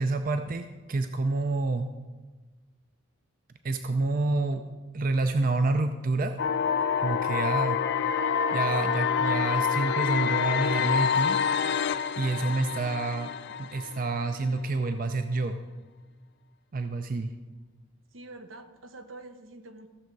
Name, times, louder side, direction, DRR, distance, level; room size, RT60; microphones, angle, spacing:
voice 1, 0.0-1.9 3.6-4.6 4.9-6.3 7.0-7.8 8.5-11.4 12.2-13.3 13.6-15.6 16.7-17.3, right 3 dB, 45° right, 8 dB, 0.5 m, -28 dB
sound 1, 6.4-14.4, left 7 dB, 55° left, 0.4 m, -27 dB
voice 2, 18.1-19.9, right 2 dB, 80° right, 8 dB, 1.0 m, -46 dB
14.5 x 7.1 x 4.6 m, 1.3 s
head